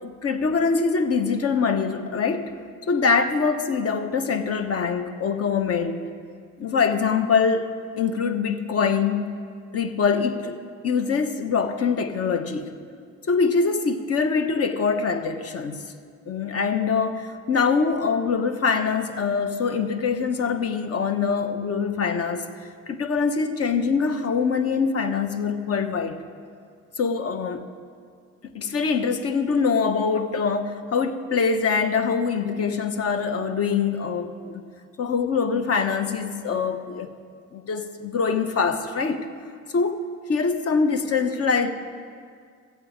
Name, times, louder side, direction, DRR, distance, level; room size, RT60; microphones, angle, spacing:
voice 1, 0.0-2.5 2.9-6.0 6.6-7.7 8.0-9.4 9.7-12.7 13.3-15.8 16.3-22.4 22.9-26.2 27.0-27.6 28.5-34.6 35.0-37.1 37.5-39.3 39.7-40.0 40.3-41.7, left 5 dB, 50° left, 9 dB, 0.9 m, -24 dB
14.0 x 8.2 x 5.0 m, 2.1 s
cardioid pair, 90°, 30 cm